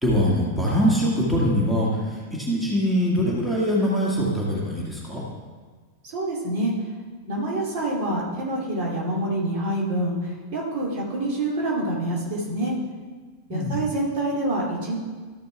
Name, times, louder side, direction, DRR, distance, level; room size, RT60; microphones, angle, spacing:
voice 1, 0.0-5.2 13.5-13.8, equal, 5° right, -5 dB, 1.9 m, -23 dB
voice 2, 6.0-6.7 7.3-12.8 13.5-15.0, right 1 dB, 45° right, -4 dB, 2.6 m, -26 dB
13.0 x 6.5 x 3.4 m, 1.4 s
figure-of-eight pair, 90°, 0 cm